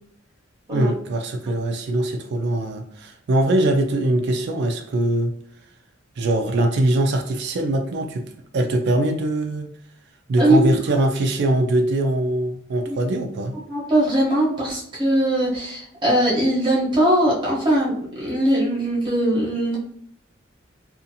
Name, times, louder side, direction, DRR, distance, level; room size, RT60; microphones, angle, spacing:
voice 1, 0.7-5.3 6.2-8.2 8.5-9.7 10.3-13.5, right 1 dB, 55° right, 4 dB, 0.3 m, -22 dB
voice 2, 10.4-10.7 13.7-19.8, right 1 dB, 25° right, -6 dB, 0.8 m, -20 dB
2.6 x 2.4 x 2.7 m, 0.68 s
head